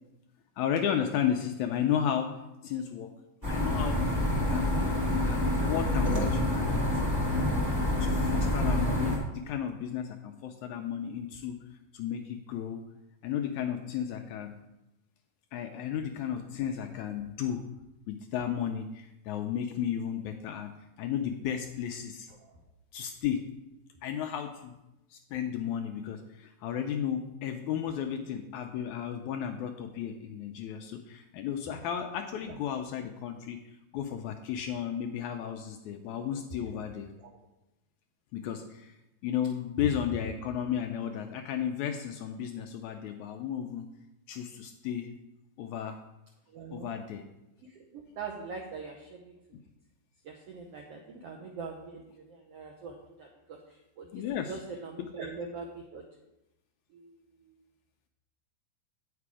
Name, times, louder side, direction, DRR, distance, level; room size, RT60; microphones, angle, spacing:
voice 1, 0.6-2.3 2.6-3.1 3.5-4.0 4.3-4.8 5.1-7.1 8.0-11.6 11.9-12.8 13.2-14.5 15.5-17.6 18.1-20.7 21.0-22.3 22.9-23.4 24.0-24.7 25.1-33.6 33.9-37.1 38.3-39.0 39.2-43.9 44.3-45.1 45.6-46.0 46.7-47.2 54.1-54.6 55.0-55.1, left 9 dB, 80° left, 5 dB, 1.7 m, -33 dB
sound 1, 3.4-9.2, left 1 dB, 25° right, 0.4 m, -27 dB
voice 2, 46.5-46.9 47.9-49.2 50.3-52.0 52.5-53.6 54.0-54.1 54.5-55.7 55.9-56.0, right 4 dB, 80° right, 0 dB, 1.4 m, -41 dB
8.6 x 5.9 x 4.8 m, 0.93 s
omnidirectional pair, 3.8 m